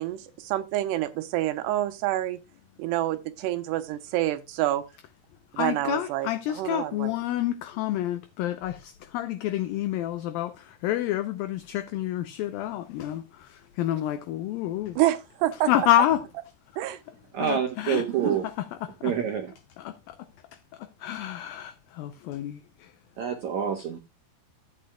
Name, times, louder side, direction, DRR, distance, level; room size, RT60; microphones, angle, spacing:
voice 1, 0.0-2.4 2.8-4.8 5.5-6.3 6.6-7.1 15.0-15.7 16.8-17.0, right 14 dB, 85° right, 3.0 m, -27 dB
voice 2, 5.5-15.0 15.7-16.2 17.4-18.0 18.8-19.1 19.8-20.2 20.5-22.9, left 13 dB, 80° left, 2.1 m, -29 dB
voice 3, 17.3-18.5 19.0-19.5 23.2-24.0, right 8 dB, 70° right, 1.7 m, -27 dB
14.5 x 8.8 x 2.2 m
omnidirectional pair, 4.7 m